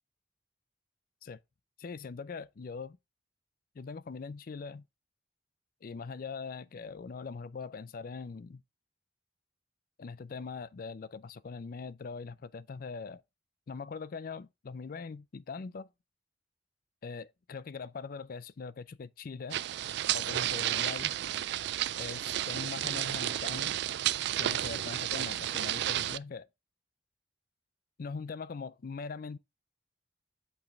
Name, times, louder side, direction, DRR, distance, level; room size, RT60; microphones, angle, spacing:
voice 1, 1.8-3.0 3.8-4.8 5.8-8.6 10.0-13.2 13.7-15.9 17.0-19.6 20.1-21.2 22.0-23.8 24.4-26.5 28.0-29.4, left 5 dB, 50° left, 0.4 m, -41 dB
sound 1, 19.5-26.2, right 12 dB, 65° right, 0.3 m, -32 dB
8.4 x 3.3 x 5.1 m
head